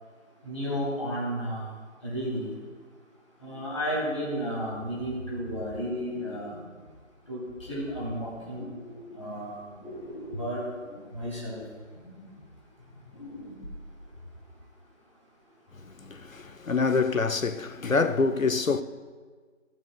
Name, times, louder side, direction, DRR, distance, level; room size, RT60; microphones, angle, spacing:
voice 1, 0.4-1.7 2.0-2.5 3.4-6.5 7.3-8.7 9.1-9.6 10.4-10.6 11.1-11.6, equal, 25° left, 2.9 m, -32 dB
sound 1, 4.6-7.0 7.5-9.5 9.8-14.6, equal, 45° left, 3.0 m, -45 dB
voice 2, 15.8-18.8, left 4 dB, 85° left, 0.8 m, -26 dB
14.0 x 12.5 x 2.2 m
figure-of-eight pair, 175°, 39 cm